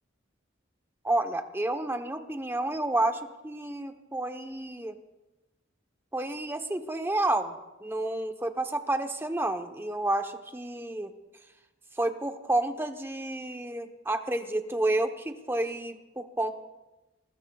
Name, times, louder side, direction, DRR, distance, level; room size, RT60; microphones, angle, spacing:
voice 1, 1.0-4.9 6.1-7.5 7.8-11.1 12.0-16.5, right 2 dB, 10° right, 6 dB, 0.9 m, -30 dB
26.5 x 20.5 x 2.4 m, 1.0 s
head